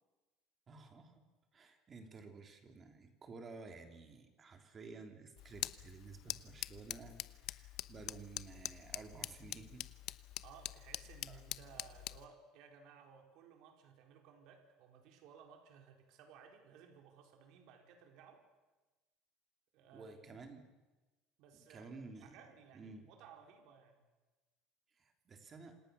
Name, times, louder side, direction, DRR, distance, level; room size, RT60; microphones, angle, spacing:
voice 1, 0.7-1.2 1.5-9.9 11.3-11.4 19.9-20.6 21.5-22.4 22.7-23.1 24.9-25.8, right 4 dB, 25° right, 5 dB, 3.3 m, -53 dB
sound 1, 5.4-12.3, left 15 dB, 55° left, 0.9 m, -45 dB
voice 2, 10.4-18.4 19.7-20.4 21.4-21.9 22.2-24.0, right 7 dB, 60° right, 3 dB, 4.6 m, -59 dB
28.0 x 27.0 x 7.0 m, 1.2 s
cardioid pair, 150°, 0 cm